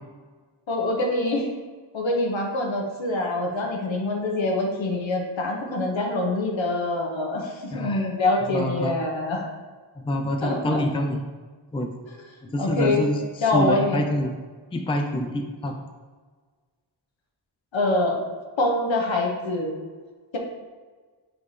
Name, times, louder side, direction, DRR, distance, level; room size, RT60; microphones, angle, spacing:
voice 1, 0.7-1.5 1.9-9.4 10.4-10.8 12.6-13.0 13.4-14.0 17.7-18.2 18.6-19.7, left 2 dB, 70° left, 1 dB, 1.2 m, -25 dB
voice 2, 7.7-8.1 8.5-8.9 10.0-11.2 11.7-11.9 12.4-13.2 13.5-14.3 14.7-15.8, left 1 dB, 10° left, 3 dB, 0.4 m, -26 dB
8.0 x 3.7 x 3.2 m, 1.4 s
wide cardioid pair, 100°, 47 cm